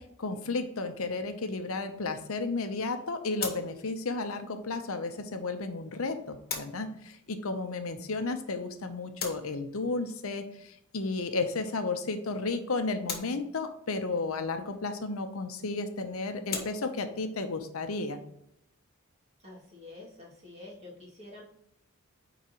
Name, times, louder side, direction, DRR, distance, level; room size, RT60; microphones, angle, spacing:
voice 1, 0.0-18.2, left 3 dB, 75° left, 8 dB, 0.8 m, -33 dB
sound 1, 3.3-20.2, left 6 dB, 45° left, 1.4 m, -45 dB
voice 2, 19.4-21.4, left 2 dB, 30° right, -3 dB, 2.3 m, -48 dB
9.4 x 4.0 x 3.0 m, 0.75 s
head